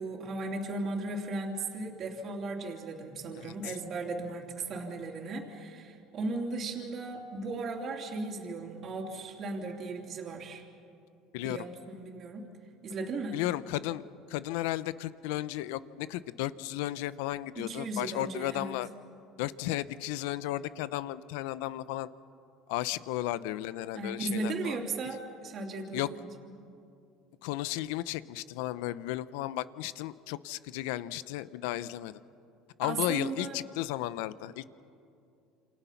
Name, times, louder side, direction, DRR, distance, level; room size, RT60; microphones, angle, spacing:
voice 1, 0.0-10.6 11.4-12.5 12.8-13.4 17.5-18.7 23.9-26.2 32.8-33.6, right 3 dB, 45° right, 0 dB, 3.4 m, -36 dB
voice 2, 3.4-3.8 11.3-11.7 13.3-18.9 19.4-22.1 22.7-24.8 25.9-26.1 27.4-32.2 32.8-34.7, left 15 dB, 85° left, 16 dB, 0.8 m, -34 dB
29.0 x 28.0 x 5.9 m, 2.6 s
supercardioid pair, 110°, 0 cm